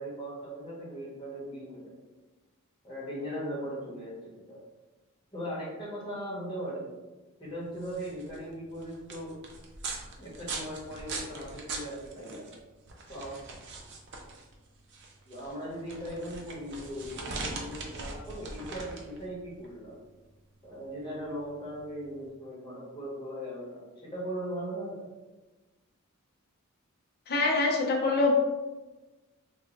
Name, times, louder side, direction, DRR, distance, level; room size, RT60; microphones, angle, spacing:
voice 1, 0.0-1.9 2.8-4.6 5.3-6.9 7.4-9.3 10.2-12.5 13.1-13.3 15.2-20.0 20.6-25.0, equal, 20° left, -6 dB, 1.0 m, -39 dB
sound 1, 7.6-22.2, right 3 dB, 55° right, 0.5 m, -42 dB
voice 2, 27.3-28.3, left 3 dB, 45° left, -2 dB, 0.6 m, -25 dB
3.6 x 2.3 x 2.9 m, 1.2 s
head